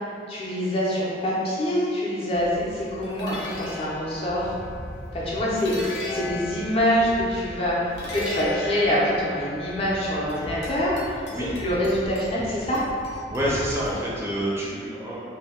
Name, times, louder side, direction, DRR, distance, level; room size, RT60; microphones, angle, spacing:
voice 1, 0.3-4.5 5.1-11.2 11.5-12.8, equal, 35° left, -6 dB, 0.5 m, -25 dB
sound 1, 2.3-14.4, left 1 dB, 85° left, 0.7 m, -36 dB
voice 2, 13.3-15.2, equal, 15° right, -7 dB, 0.5 m, -28 dB
2.7 x 2.2 x 3.5 m, 2.3 s
head